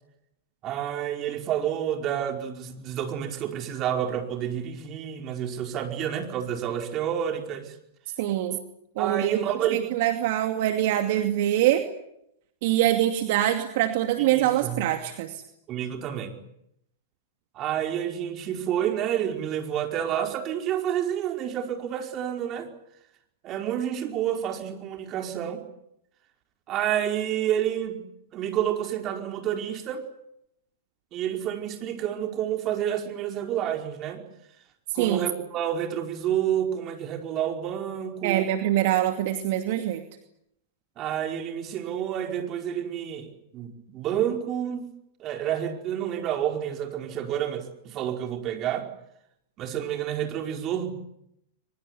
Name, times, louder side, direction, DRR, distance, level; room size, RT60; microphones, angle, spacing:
voice 1, 0.6-7.8 9.0-9.8 14.2-14.8 15.7-16.4 17.5-22.7 23.4-25.7 26.7-28.0 28.3-30.0 31.1-34.2 34.9-38.6 41.0-44.9 45.2-48.9 49.6-50.9, right 10 dB, 35° right, 4 dB, 4.9 m, -29 dB
voice 2, 8.2-8.6 9.0-9.4 9.7-11.8 12.6-15.4 34.9-35.3 38.2-40.0, right 13 dB, 60° right, 6 dB, 2.4 m, -24 dB
23.5 x 21.5 x 9.9 m, 0.79 s
hypercardioid pair, 110°, 0 cm